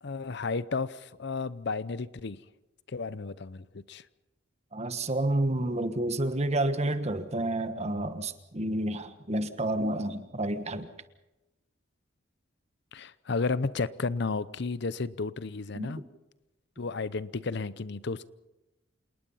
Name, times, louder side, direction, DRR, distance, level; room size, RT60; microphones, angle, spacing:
voice 1, 0.0-2.4 2.9-4.1 12.9-16.0 16.8-18.3, left 4 dB, 65° left, 17 dB, 0.7 m, -33 dB
voice 2, 4.7-10.9 15.7-16.0, right 1 dB, 35° right, 10 dB, 1.4 m, -30 dB
28.0 x 19.0 x 5.6 m, 1.0 s
head